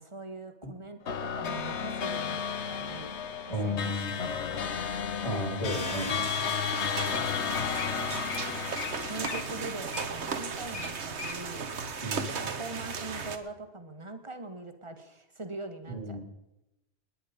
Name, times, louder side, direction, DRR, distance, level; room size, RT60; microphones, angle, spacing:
voice 1, 0.0-3.2 3.6-3.9 4.3-4.6 9.1-11.7 12.4-16.2, right 2 dB, 25° right, 7 dB, 1.8 m, -42 dB
sound 1, 1.1-10.7, left 7 dB, 85° left, 1.3 m, -33 dB
Wild animals, 1.4-2.2 2.9-3.2 3.7-4.1 4.6-5.6 6.2-6.3 6.9-7.0 7.1-7.3 7.6-7.9 8.3-8.4 8.7-8.9 9.2-11.4 11.8-11.9, left 5 dB, 60° left, 1.4 m, -41 dB
voice 2, 3.5-4.1 5.2-6.1 12.0-12.5 15.9-16.2, left 1 dB, 30° left, -3 dB, 4.6 m, -33 dB
sound 2, 5.7-13.4, right 5 dB, 80° right, 1.5 m, -36 dB
19.5 x 10.0 x 5.2 m, 0.91 s
omnidirectional pair, 1.1 m